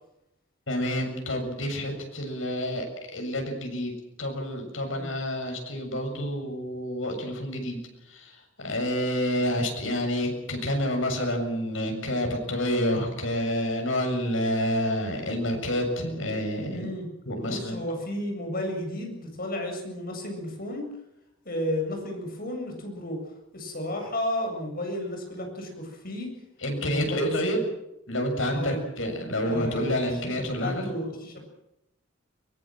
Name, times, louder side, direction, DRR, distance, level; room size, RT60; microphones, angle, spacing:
voice 1, 0.7-3.9 4.2-16.9 17.3-17.8 26.6-27.6 28.1-30.9, equal, 90° left, 3 dB, 7.2 m, -28 dB
voice 2, 16.7-17.1 17.4-20.9 21.4-23.2 23.5-26.3 26.7-27.6 28.5-28.8 29.5-31.5, left 1 dB, 50° left, 3 dB, 7.7 m, -33 dB
23.0 x 21.5 x 7.7 m, 0.85 s
head